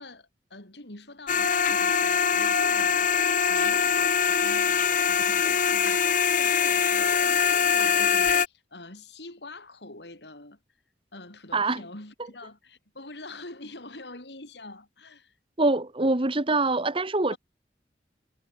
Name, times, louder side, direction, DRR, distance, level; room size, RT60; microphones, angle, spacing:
voice 1, 0.0-3.1 3.5-10.6 11.1-15.4 17.3-17.4, left 2 dB, 70° left, 5.1 m, -45 dB
sound 1, 1.3-8.5, left 7 dB, 50° left, 1.4 m, -23 dB
voice 2, 15.6-17.4, right 2 dB, 30° right, 1.5 m, -24 dB
head